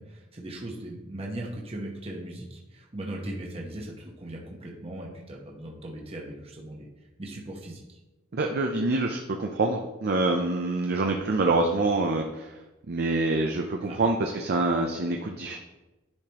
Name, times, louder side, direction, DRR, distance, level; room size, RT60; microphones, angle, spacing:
voice 1, 0.0-6.9 7.2-8.0 13.8-14.0, right 1 dB, 30° right, -1 dB, 1.1 m, -38 dB
voice 2, 8.3-12.5 12.9-15.6, right 2 dB, 55° right, 3 dB, 0.6 m, -26 dB
10.5 x 5.0 x 3.0 m, 1.1 s
head